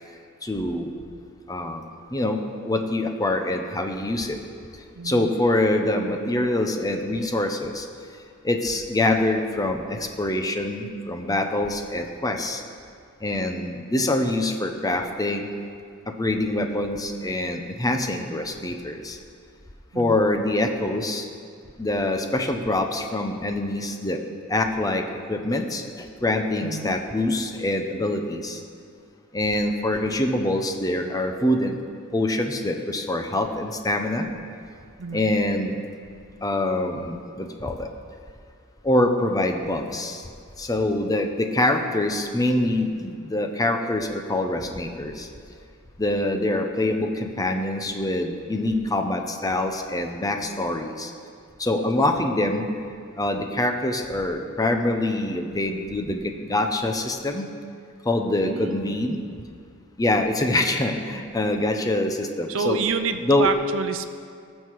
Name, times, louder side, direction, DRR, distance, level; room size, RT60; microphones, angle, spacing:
voice 1, 0.4-0.9 1.5-1.8 2.1-4.4 5.0-7.9 8.4-12.6 13.2-15.4 16.2-19.2 19.9-21.3 21.8-24.2 24.5-25.0 25.3-28.6 29.3-31.8 32.1-34.3 35.1-35.8 36.4-37.9 38.8-40.2 40.6-45.3 46.0-51.1 51.6-52.6 53.2-56.2 56.5-57.5 58.0-59.2 60.0-62.8 63.2-63.5, left 1 dB, 20° left, 5 dB, 0.8 m, -25 dB
voice 2, 5.0-5.3 19.9-20.2 26.6-26.9 35.0-35.2 58.4-59.0 62.5-64.1, right 4 dB, 70° right, 9 dB, 0.6 m, -28 dB
19.5 x 6.6 x 4.7 m, 2.3 s
head